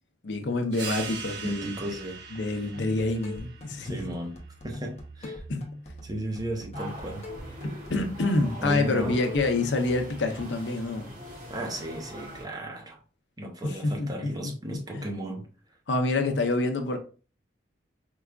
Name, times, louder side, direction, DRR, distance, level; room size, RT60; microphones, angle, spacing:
voice 1, 0.2-1.7 2.3-4.0 5.5-5.6 7.9-11.1 13.6-15.1 15.9-17.0, left 2 dB, 75° left, 0.6 m, -27 dB
sound 1, 0.7-5.9, right 5 dB, 65° right, 0.8 m, -42 dB
voice 2, 1.4-2.2 3.8-4.4 4.6-5.4 6.0-7.3 8.6-9.2 11.5-13.0 13.4-15.5, right 1 dB, 20° right, 0.6 m, -35 dB
sound 2, 2.7-10.4, left 1 dB, 35° left, 0.7 m, -42 dB
sound 3, 6.7-12.5, right 1 dB, 40° right, 1.2 m, -43 dB
4.6 x 2.3 x 2.3 m
head